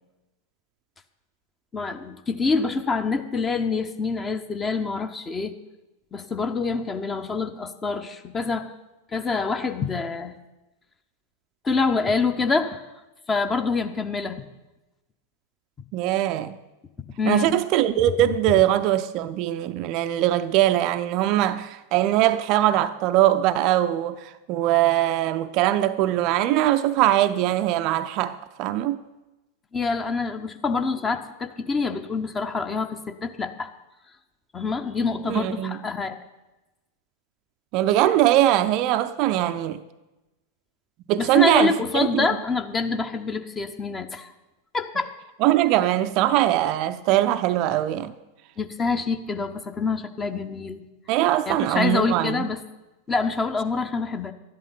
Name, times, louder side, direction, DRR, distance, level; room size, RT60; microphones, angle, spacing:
voice 1, 1.7-5.5 6.1-8.7 9.1-10.4 11.6-12.8 13.3-14.5 17.2-17.5 29.7-33.7 34.5-36.2 41.2-44.3 44.7-45.1 48.6-50.9 51.5-52.6 53.1-54.3, left 4 dB, 20° left, 0.9 m, -26 dB
voice 2, 15.9-16.6 17.3-29.0 35.2-35.8 37.7-39.8 41.1-42.3 45.4-48.1 51.1-52.5, right 13 dB, 40° right, 0.5 m, -21 dB
12.5 x 11.0 x 5.5 m
figure-of-eight pair, 90°, 0 cm